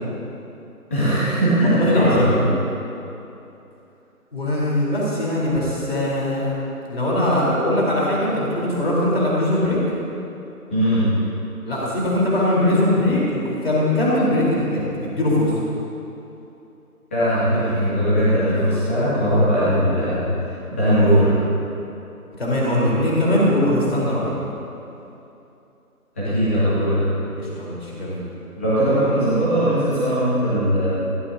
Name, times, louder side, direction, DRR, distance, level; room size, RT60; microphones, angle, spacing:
voice 1, 0.9-2.5 10.7-11.1 17.1-20.2 20.7-21.4 26.2-27.0 28.5-30.9, equal, 10° left, -13 dB, 2.4 m, -19 dB
voice 2, 1.6-2.4 4.3-6.5 6.8-9.8 11.6-15.5 22.4-24.3 27.3-28.2, left 1 dB, 40° left, -6 dB, 4.2 m, -21 dB
21.5 x 17.5 x 2.9 m, 2.8 s
figure-of-eight pair, 175°, 46 cm